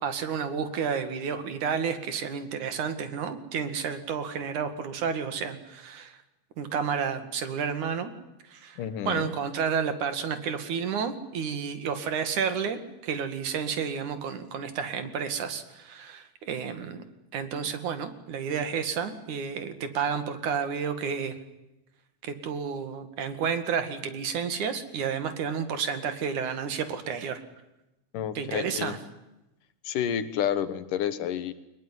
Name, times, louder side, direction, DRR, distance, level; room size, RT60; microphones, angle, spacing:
voice 1, 0.0-6.2 6.6-8.1 8.5-8.8 9.1-17.0 17.3-21.3 22.2-27.4 28.4-29.0, right 6 dB, 70° right, 9 dB, 3.6 m, -31 dB
voice 2, 8.8-9.3 28.1-29.0 29.9-31.5, left 9 dB, 85° left, 13 dB, 3.0 m, -30 dB
23.0 x 21.0 x 9.4 m, 0.94 s
omnidirectional pair, 3.6 m